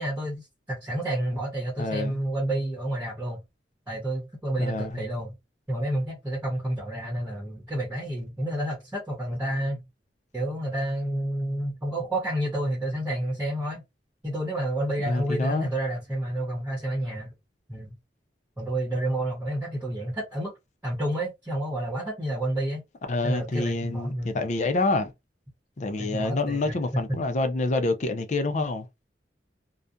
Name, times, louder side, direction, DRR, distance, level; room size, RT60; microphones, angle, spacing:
voice 1, 0.0-3.4 3.9-5.3 5.7-9.8 10.3-13.8 14.2-17.3 17.7-17.9 18.6-20.5 20.8-22.8 23.2-24.4 26.0-27.2, right 1 dB, 10° right, 1.0 m, -30 dB
voice 2, 1.8-2.2 4.6-5.0 15.0-15.7 23.1-25.1 25.8-28.9, left 2 dB, 40° left, 0.5 m, -27 dB
2.4 x 2.2 x 2.5 m
head